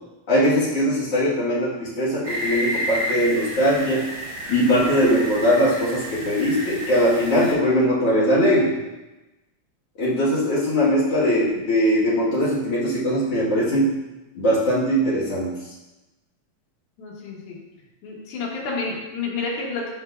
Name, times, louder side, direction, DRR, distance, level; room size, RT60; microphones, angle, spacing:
voice 1, 0.3-4.0 4.5-8.7 10.0-13.9 14.3-15.5, equal, 50° left, -7 dB, 2.4 m, -20 dB
sound 1, 2.2-7.5, equal, 40° right, 1.2 m, -30 dB
voice 2, 17.0-17.6 18.0-19.9, left 4 dB, 75° left, -5 dB, 3.2 m, -30 dB
9.6 x 5.3 x 2.6 m, 1.1 s
omnidirectional pair, 4.4 m